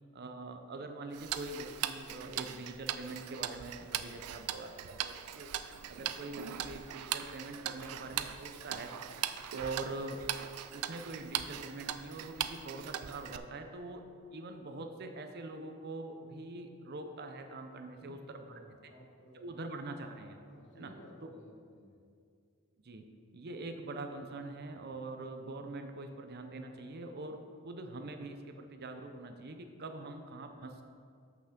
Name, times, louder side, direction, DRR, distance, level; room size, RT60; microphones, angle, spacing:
voice 1, 0.1-5.5 5.9-8.9 9.5-10.2 10.7-14.0 14.3-18.6 19.3-20.4 20.7-20.9 21.2-21.4 22.8-23.1 23.3-30.8, right 2 dB, 45° right, 6 dB, 0.6 m, -44 dB
Tick-tock, 1.1-13.4, right 11 dB, 90° right, 0.4 m, -40 dB
voice 2, 17.8-19.6 20.5-21.9, left 1 dB, 55° left, 1 dB, 1.2 m, -56 dB
6.0 x 5.7 x 6.7 m, 2.3 s
head